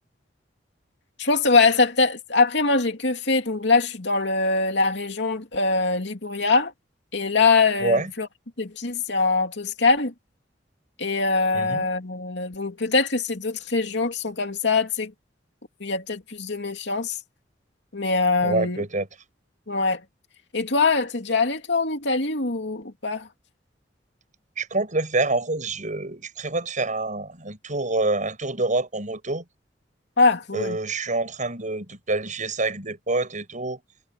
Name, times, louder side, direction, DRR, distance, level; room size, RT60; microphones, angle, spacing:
voice 1, 1.2-6.7 7.1-8.3 8.6-10.1 11.0-15.1 15.8-17.2 17.9-18.8 19.7-20.0 20.5-23.3 30.2-30.8, left 3 dB, 70° left, 2.8 m, -23 dB
voice 2, 11.5-11.9 18.4-19.1 24.6-29.4 30.5-33.8, right 2 dB, 45° right, 7.5 m, -26 dB
head